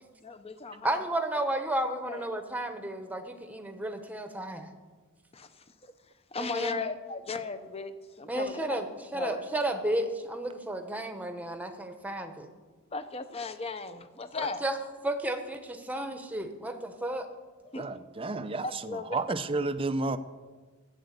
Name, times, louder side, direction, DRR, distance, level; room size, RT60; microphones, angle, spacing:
voice 1, 0.2-1.0 2.1-2.3 5.3-5.9 6.3-8.8 9.1-9.4 12.9-14.6 17.6-17.9 18.6-19.0, left 4 dB, 25° left, 11 dB, 0.7 m, -37 dB
voice 2, 0.8-4.7 6.4-6.8 8.3-8.8 9.1-12.5 14.4-14.8 15.0-17.3, right 1 dB, 5° right, 7 dB, 0.9 m, -32 dB
voice 3, 17.7-20.2, right 3 dB, 25° right, 12 dB, 0.5 m, -31 dB
12.0 x 8.0 x 8.2 m, 1.4 s
head